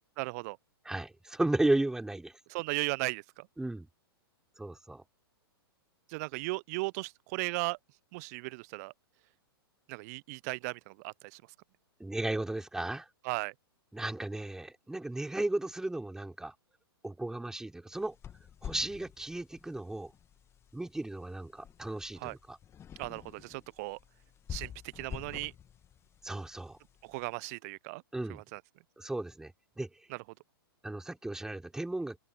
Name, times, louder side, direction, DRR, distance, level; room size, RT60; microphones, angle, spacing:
voice 1, 0.2-0.6 2.5-3.5 6.1-7.8 8.1-8.9 9.9-11.4 13.2-13.5 22.2-22.4 23.0-24.0 24.5-25.5 27.0-28.0 28.3-28.6 30.1-30.2, right 26 dB, 40° right, 0.9 m, -36 dB
voice 2, 0.9-2.3 3.6-3.9 4.6-5.0 12.0-13.1 13.9-16.5 17.0-18.2 18.6-20.1 20.7-22.6 26.2-26.8 28.1-28.4 29.0-29.9 30.8-32.2, right 2 dB, 5° right, 4.1 m, -34 dB
sound 1, 17.9-27.3, left 9 dB, 20° left, 2.3 m, -48 dB
open air
figure-of-eight pair, 110°, 13 cm